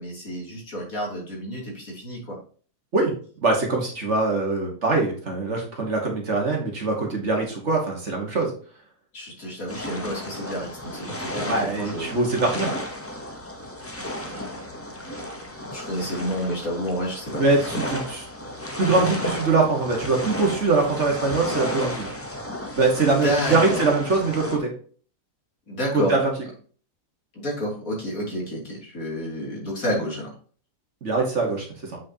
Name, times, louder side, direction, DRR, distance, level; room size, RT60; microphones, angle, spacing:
voice 1, 0.0-2.4 9.1-12.1 14.0-14.5 14.9-15.0 15.6-17.4 23.2-23.8 25.7-26.1 27.3-30.3, equal, 55° left, -3 dB, 3.2 m, -30 dB
voice 2, 3.4-8.5 11.5-12.7 17.4-18.3 18.8-22.1 22.7-24.7 25.9-26.3 31.0-32.0, right 3 dB, 45° right, 1 dB, 1.8 m, -23 dB
sound 1, 9.7-24.6, left 1 dB, 15° left, 0.6 m, -33 dB
7.4 x 6.2 x 2.8 m, 0.43 s
omnidirectional pair, 1.7 m